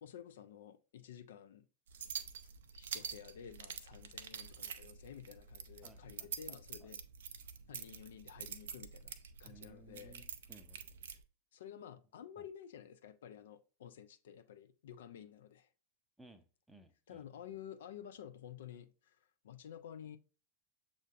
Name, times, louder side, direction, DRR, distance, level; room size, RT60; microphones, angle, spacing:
voice 1, 0.0-1.7 2.0-2.1 2.4-7.0 7.7-9.1 9.4-10.2 11.5-15.7 17.1-20.2, left 9 dB, 60° left, 0.3 m, -52 dB
sound 1, 1.9-11.2, right 7 dB, 60° right, 0.4 m, -47 dB
voice 2, 5.8-6.9 9.4-10.8 12.4-12.5 16.2-17.2 17.5-17.6, right 2 dB, 5° right, 0.5 m, -61 dB
7.1 x 2.5 x 2.4 m
figure-of-eight pair, 90°, 0 cm